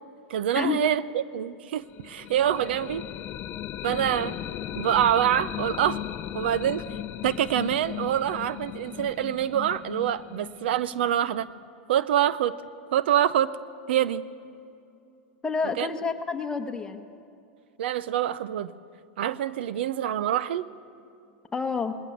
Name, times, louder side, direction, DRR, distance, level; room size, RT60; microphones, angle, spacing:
voice 1, 0.3-3.0 3.8-4.4 4.7-6.0 6.3-6.8 7.2-11.5 11.9-12.6 12.9-13.5 13.9-14.2 15.8-15.9 17.8-18.7 19.2-20.7, right 11 dB, 80° right, 17 dB, 0.6 m, -25 dB
sound 1, 1.9-11.7, left 12 dB, 35° left, 0.5 m, -37 dB
voice 2, 15.4-17.1 21.5-22.0, left 5 dB, 15° left, 5 dB, 1.2 m, -29 dB
20.0 x 18.5 x 7.3 m, 2.6 s
supercardioid pair, 125°, 6 cm